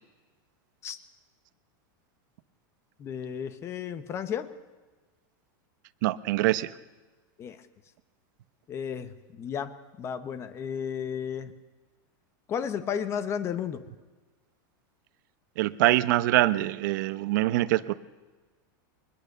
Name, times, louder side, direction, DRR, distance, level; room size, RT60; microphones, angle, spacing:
voice 1, 3.0-4.5 7.4-7.6 8.7-9.7 10.0-11.5 12.5-13.8, left 8 dB, 25° left, 11 dB, 1.2 m, -33 dB
voice 2, 6.0-6.7 15.6-17.9, right 17 dB, 60° right, 13 dB, 1.0 m, -24 dB
24.0 x 20.5 x 6.8 m, 1.3 s
supercardioid pair, 155°, 11 cm